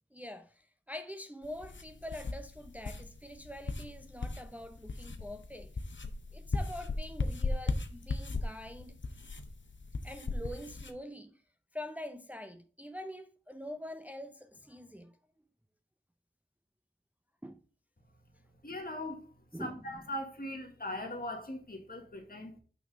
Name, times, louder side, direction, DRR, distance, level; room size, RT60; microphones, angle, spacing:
voice 1, 0.1-5.7 6.3-9.0 10.0-11.4 11.7-15.2 17.4-17.6 19.5-19.8, left 1 dB, 10° right, 0.5 m, -45 dB
sound 1, 1.4-10.9, left 3 dB, 75° left, 0.7 m, -37 dB
voice 2, 18.6-19.3 19.6-22.5, left 1 dB, 50° left, 1.4 m, -40 dB
6.0 x 4.1 x 5.0 m
wide cardioid pair, 50°, 20 cm